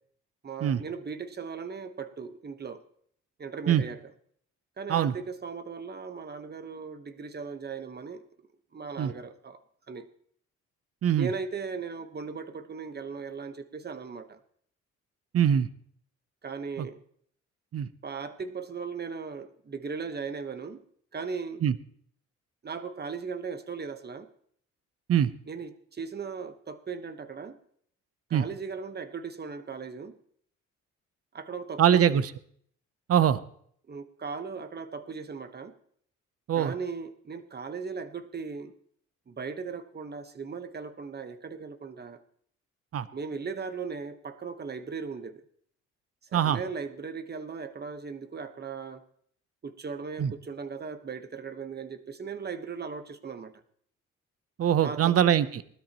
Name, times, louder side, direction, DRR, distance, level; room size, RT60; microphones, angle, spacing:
voice 1, 0.4-2.8 3.4-4.0 4.8-8.2 8.7-9.6 9.9-10.1 11.2-14.4 16.4-17.0 18.0-20.8 21.1-21.6 22.6-24.3 25.5-27.6 28.3-30.2 31.3-32.2 33.9-35.7 36.5-38.7 39.3-42.2 43.1-45.4 46.3-49.0 49.6-53.5 54.8-55.2, right 5 dB, 35° right, 10 dB, 1.3 m, -38 dB
voice 2, 15.3-15.7 16.8-16.9 17.7-17.9 21.6-21.7 25.1-25.3 28.3-28.5 31.8-32.2 33.1-33.4 36.5-36.7 42.9-43.1 46.3-46.6 50.2-50.3 54.6-55.6, right 9 dB, 50° right, 15 dB, 0.8 m, -23 dB
19.5 x 13.0 x 3.1 m, 0.63 s
cardioid pair, 90°, 30 cm